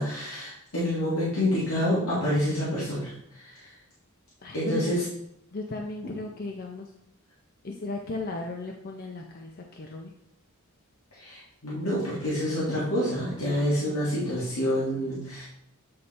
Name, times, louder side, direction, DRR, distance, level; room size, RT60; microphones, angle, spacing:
voice 1, 0.0-3.7 4.5-5.0 11.2-15.4, equal, 90° left, -9 dB, 1.9 m, -28 dB
voice 2, 4.4-4.9 5.5-6.9 7.6-10.1, left 2 dB, 45° left, 1 dB, 0.6 m, -35 dB
8.6 x 3.2 x 4.1 m, 0.78 s
head